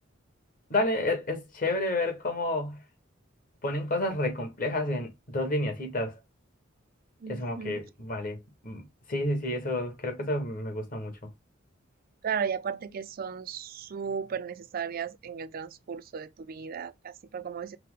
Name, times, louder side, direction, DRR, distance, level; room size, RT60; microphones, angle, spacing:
voice 1, 0.7-2.8 3.6-6.2 7.3-11.2, left 1 dB, 45° left, 1.3 m, -30 dB
voice 2, 7.2-7.8 12.2-17.8, right 6 dB, 50° right, 0.4 m, -35 dB
5.6 x 2.1 x 3.7 m
head